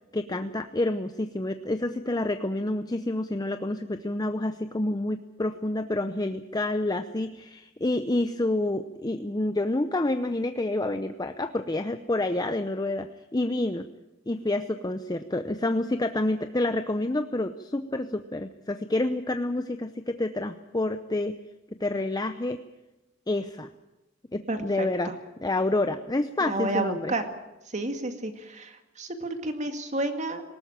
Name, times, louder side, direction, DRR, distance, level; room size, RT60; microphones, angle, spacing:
voice 1, 0.1-13.9 14.3-21.4 21.8-22.6 23.3-23.7 24.3-25.1 25.4-27.1, left 2 dB, 20° left, 8 dB, 0.7 m, -28 dB
voice 2, 24.5-25.2 26.4-27.3 27.7-30.4, right 2 dB, 40° right, 7 dB, 2.1 m, -31 dB
20.0 x 18.5 x 8.8 m, 0.99 s
head